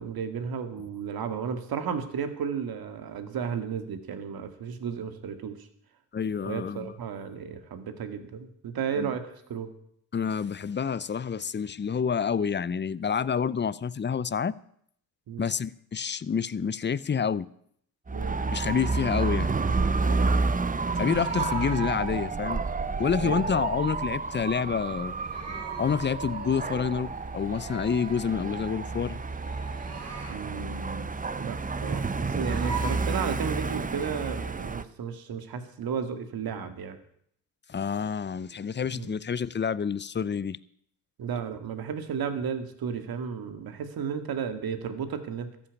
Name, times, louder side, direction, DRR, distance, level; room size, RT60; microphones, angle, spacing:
voice 1, 0.0-5.7 6.4-9.7 15.3-15.5 18.1-18.6 20.0-20.5 23.2-23.5 30.3-31.1 31.4-37.0 38.9-39.2 41.2-45.5, right 7 dB, 70° right, 2.0 m, -34 dB
voice 2, 6.1-6.9 9.0-9.1 10.1-14.5 15.4-17.5 18.5-19.6 21.0-22.6 23.0-25.1 25.8-29.2 37.7-40.6, left 6 dB, 30° left, 0.7 m, -28 dB
Dog / Motorcycle, 18.1-34.8, right 4 dB, 20° right, 0.8 m, -30 dB
sound 1, 18.9-34.4, right 3 dB, 40° right, 3.4 m, -43 dB
14.0 x 8.6 x 8.4 m
supercardioid pair, 55°, 38 cm